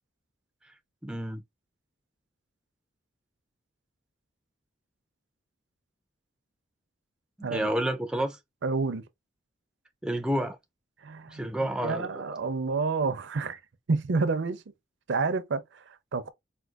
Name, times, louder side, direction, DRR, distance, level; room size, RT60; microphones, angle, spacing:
voice 1, 1.0-1.4 7.4-8.4 10.0-10.6 11.3-12.1, right 1 dB, 5° right, 0.3 m, -29 dB
voice 2, 7.4-7.7 8.6-9.0 11.0-13.6 13.9-14.6 15.1-16.3, right 4 dB, 65° right, 0.5 m, -29 dB
4.4 x 2.2 x 2.3 m
head